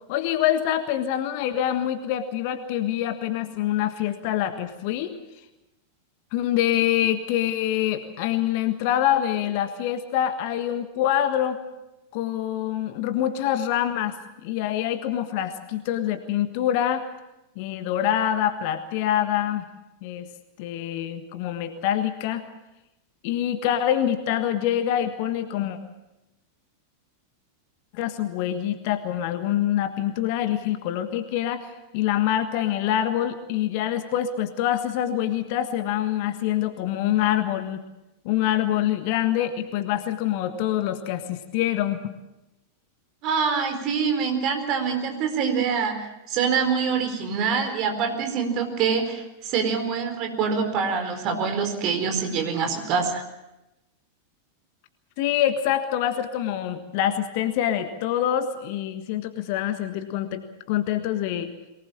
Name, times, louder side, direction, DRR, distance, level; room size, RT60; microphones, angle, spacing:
voice 1, 0.1-5.1 6.3-11.6 12.1-14.2 14.4-17.0 17.6-19.7 20.0-20.2 20.6-22.4 23.2-25.8 27.9-37.8 38.2-42.0 55.2-60.4 60.7-61.5, left 11 dB, 45° left, 9 dB, 1.5 m, -25 dB
voice 2, 43.2-53.2, right 6 dB, 40° right, 6 dB, 4.3 m, -25 dB
23.0 x 19.0 x 7.3 m, 0.96 s
figure-of-eight pair, 90°, 0 cm